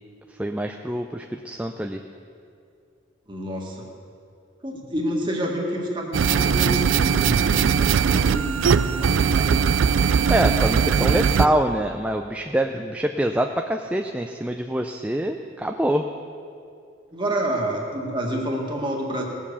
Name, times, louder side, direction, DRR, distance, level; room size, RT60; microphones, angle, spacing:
voice 1, 0.3-2.0 10.3-16.0, right 1 dB, 5° right, 4 dB, 0.4 m, -25 dB
voice 2, 3.3-3.9 4.6-9.7 11.0-11.5 12.7-12.8 17.1-19.2, right 1 dB, 25° right, -1 dB, 1.9 m, -29 dB
sound 1, 6.1-11.5, right 6 dB, 80° right, 0.4 m, -20 dB
18.0 x 7.4 x 6.9 m, 2.4 s
head